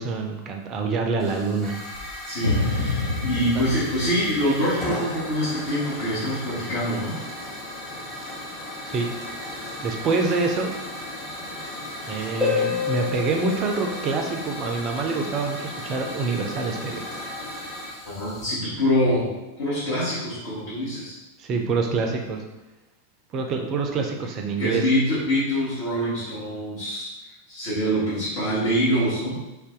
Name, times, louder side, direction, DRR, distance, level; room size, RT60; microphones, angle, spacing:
voice 1, 0.0-1.8 8.8-9.1 9.8-10.7 12.1-17.0 21.4-22.4 23.3-24.8, right 4 dB, 30° right, 3 dB, 0.4 m, -26 dB
Hiss / Fire, 1.2-18.5, left 1 dB, 25° left, 1.2 m, -36 dB
voice 2, 2.2-7.2 18.0-19.3 19.6-21.1 24.6-29.4, equal, 50° left, -11 dB, 1.0 m, -25 dB
sound 1, 2.4-5.6, left 2 dB, 80° left, 0.4 m, -28 dB
Harp, 12.4-14.9 18.4-18.5, left 7 dB, 5° left, 0.8 m, -28 dB
2.6 x 2.2 x 3.6 m, 1.0 s
figure-of-eight pair, 90°, 0 cm